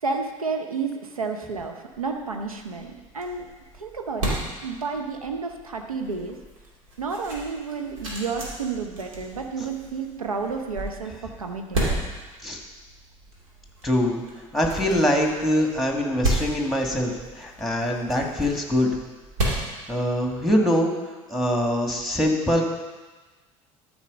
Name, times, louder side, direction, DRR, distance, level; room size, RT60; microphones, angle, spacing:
voice 1, 0.0-3.5 3.7-4.4 4.6-6.4 7.0-11.1 11.4-11.9, right 4 dB, 90° right, 5 dB, 0.8 m, -31 dB
sound 1, 2.0-20.7, right 1 dB, 75° right, 2.5 m, -34 dB
voice 2, 13.8-14.2 14.5-18.9 19.9-21.0 21.3-22.6, equal, ahead, 1 dB, 2.1 m, -23 dB
13.0 x 4.9 x 5.3 m, 1.3 s
figure-of-eight pair, 65°, 18 cm